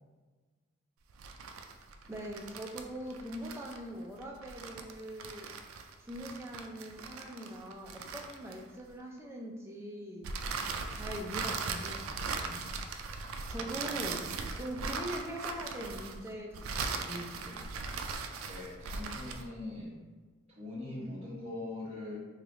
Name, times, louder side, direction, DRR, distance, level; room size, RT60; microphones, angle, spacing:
sound 1, 1.1-8.9 10.2-19.5, right 4 dB, 85° right, 0.3 m, -39 dB
voice 1, 2.1-5.5 6.0-10.3 10.9-12.7 13.5-17.7, equal, 10° right, -1 dB, 0.4 m, -42 dB
voice 2, 18.4-20.0 20.6-22.2, left 2 dB, 30° right, -7 dB, 1.0 m, -41 dB
3.3 x 2.4 x 3.6 m, 1.4 s
head